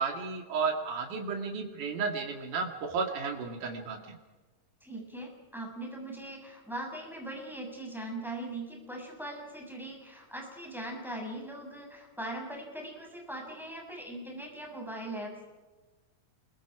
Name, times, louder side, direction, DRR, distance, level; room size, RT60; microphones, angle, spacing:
voice 1, 0.0-4.2, right 5 dB, 85° right, 3 dB, 3.9 m, -33 dB
voice 2, 4.8-15.5, right 1 dB, ahead, 0 dB, 6.8 m, -40 dB
28.5 x 23.5 x 4.9 m, 1.2 s
omnidirectional pair, 3.6 m